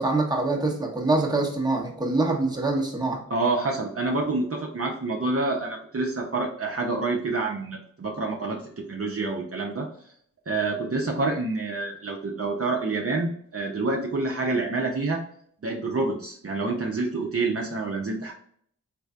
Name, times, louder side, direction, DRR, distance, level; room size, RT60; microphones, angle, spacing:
voice 1, 0.0-3.2, right 2 dB, 10° right, 0 dB, 1.0 m, -24 dB
voice 2, 3.3-9.9 10.5-15.2 15.6-18.3, right 3 dB, 40° right, -1 dB, 0.8 m, -27 dB
3.3 x 3.2 x 2.4 m, 0.63 s
cardioid pair, 40°, 34 cm